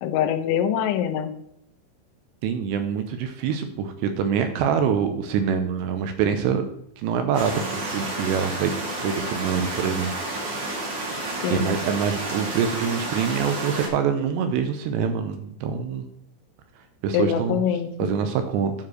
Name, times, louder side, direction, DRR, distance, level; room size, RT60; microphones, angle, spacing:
voice 1, 0.0-1.3 11.4-11.8 17.1-17.9, left 9 dB, 80° left, 8 dB, 3.1 m, -24 dB
voice 2, 2.4-6.7 7.0-8.7 9.0-10.1 11.5-16.1 17.0-17.6 18.0-18.7, right 7 dB, 80° right, 7 dB, 2.7 m, -25 dB
sound 1, 7.3-13.9, right 2 dB, 60° right, 1.2 m, -31 dB
9.8 x 4.5 x 6.2 m, 0.75 s
omnidirectional pair, 5.5 m